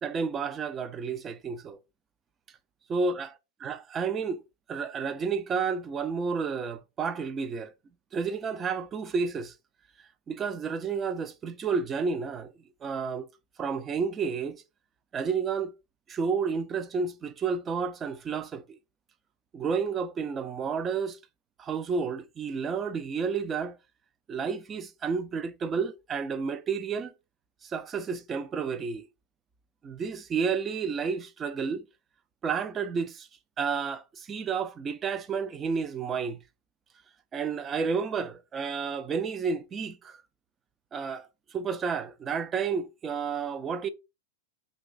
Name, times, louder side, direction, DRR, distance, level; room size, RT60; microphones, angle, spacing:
voice 1, 0.0-1.8 2.9-3.3 3.6-4.4 4.7-7.7 8.1-9.5 10.3-12.5 12.8-13.3 13.6-14.6 15.1-15.7 16.1-18.8 19.5-21.2 21.6-23.8 24.3-27.1 27.6-29.1 29.8-31.8 32.4-33.3 33.6-36.4 37.3-40.2 40.9-43.9, right 5 dB, 20° right, 0.3 m, -31 dB
2.5 x 2.3 x 3.8 m
supercardioid pair, 145°, 0 cm